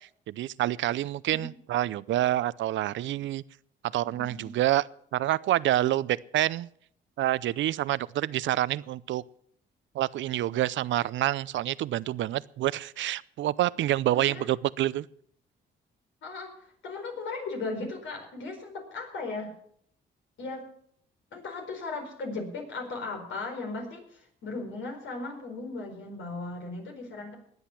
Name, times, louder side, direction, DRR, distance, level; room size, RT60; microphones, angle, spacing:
voice 1, 0.3-3.4 3.9-4.8 5.1-6.7 7.2-9.2 9.9-15.1, right 14 dB, 70° right, 19 dB, 0.5 m, -27 dB
voice 2, 4.2-4.5 14.1-14.5 16.2-19.5 20.4-20.6 21.3-27.3, left 3 dB, 75° left, 3 dB, 4.8 m, -37 dB
20.0 x 8.1 x 5.9 m, 0.66 s
cardioid pair, 90°, 20 cm